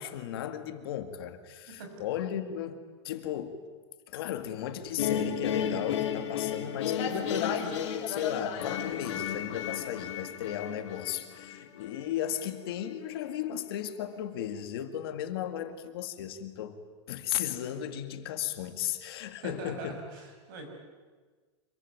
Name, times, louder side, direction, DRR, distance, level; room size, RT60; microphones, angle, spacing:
voice 1, 0.0-2.8 3.0-3.6 4.1-16.8 17.1-20.0, left 10 dB, 55° left, 8 dB, 2.1 m, -35 dB
sound 1, 5.0-12.1, left 8 dB, 75° left, 3.9 m, -33 dB
sound 2, 6.5-6.6 6.9-8.9, left 7 dB, 30° left, 3.0 m, -36 dB
voice 2, 19.4-20.7, right 3 dB, 45° right, 3 dB, 6.5 m, -42 dB
26.5 x 23.5 x 9.6 m, 1.4 s
supercardioid pair, 180°, 15 cm